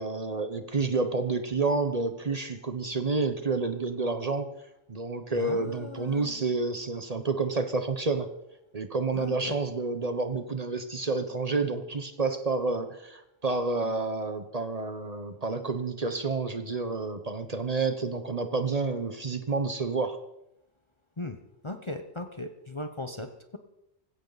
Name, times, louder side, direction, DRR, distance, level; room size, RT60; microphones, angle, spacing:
voice 1, 0.0-4.5 4.9-8.3 8.7-20.2, right 3 dB, 35° right, 8 dB, 1.0 m, -29 dB
voice 2, 5.3-6.5 9.1-9.6 21.2-21.4 21.6-23.6, left 2 dB, 30° left, 7 dB, 0.8 m, -38 dB
18.5 x 16.0 x 4.0 m, 0.86 s
omnidirectional pair, 1.2 m